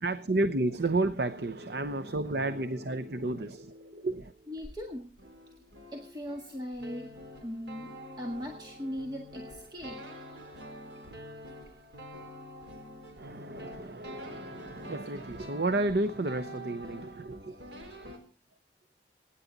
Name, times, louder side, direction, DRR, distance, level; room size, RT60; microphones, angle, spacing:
voice 1, 0.0-4.3 13.2-17.6 18.0-18.1, right 2 dB, 70° right, 10 dB, 0.8 m, -32 dB
sound 1, 2.2-4.8 5.0-18.2, equal, 90° right, 3.7 m, -47 dB
voice 2, 4.5-5.1 5.9-7.1 7.4-10.0, equal, 25° right, 1 dB, 1.8 m, -39 dB
24.0 x 10.5 x 4.0 m, 0.37 s
head